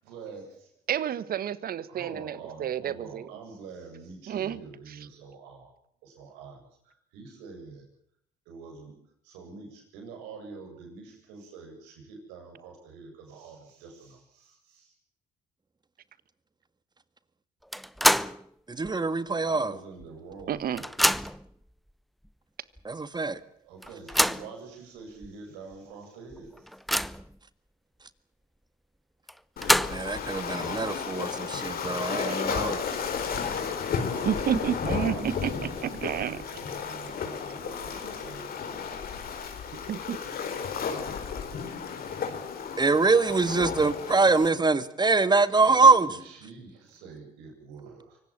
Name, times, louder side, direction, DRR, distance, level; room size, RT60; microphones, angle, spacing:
voice 1, 0.0-0.7 1.9-5.7 6.0-7.8 8.5-8.9 9.2-14.9 19.4-20.8 23.6-26.7 33.8-39.0 45.6-48.2, right 4 dB, 85° right, 3 dB, 7.9 m, -46 dB
voice 2, 0.9-3.3 4.3-4.6 4.9-5.0 20.5-20.8 32.3-32.5 34.2-35.5 35.8-36.4 39.7-40.2, right 9 dB, 60° right, 17 dB, 1.4 m, -30 dB
sound 1, 17.7-18.4 18.8-18.9 20.0-20.1 20.4-21.5 22.3-22.4 22.8-22.9 23.8-24.5 25.2-25.3 25.7-25.8 26.3-27.3 29.3-30.2, equal, ahead, 0.8 m, -26 dB
voice 3, 18.7-19.7 22.8-23.4 29.9-32.8 35.2-35.3 42.8-46.1, right 4 dB, 25° right, 13 dB, 1.8 m, -23 dB
Waves surf, 29.6-44.5, left 6 dB, 60° left, 4.5 m, -33 dB
24.5 x 18.5 x 7.5 m, 0.69 s
supercardioid pair, 65°, 17 cm